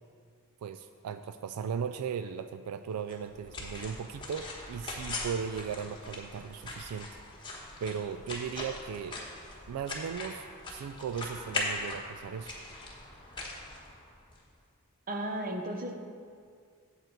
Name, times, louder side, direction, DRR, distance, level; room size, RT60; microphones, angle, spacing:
voice 1, 0.6-7.1 7.8-9.2 9.7-12.5, right 7 dB, 80° right, 10 dB, 0.3 m, -37 dB
sound 1, 3.1-14.4, left 2 dB, 20° left, 1.2 m, -40 dB
voice 2, 15.1-15.9, right 1 dB, 40° right, 4 dB, 0.8 m, -34 dB
7.9 x 7.9 x 4.5 m, 2.1 s
head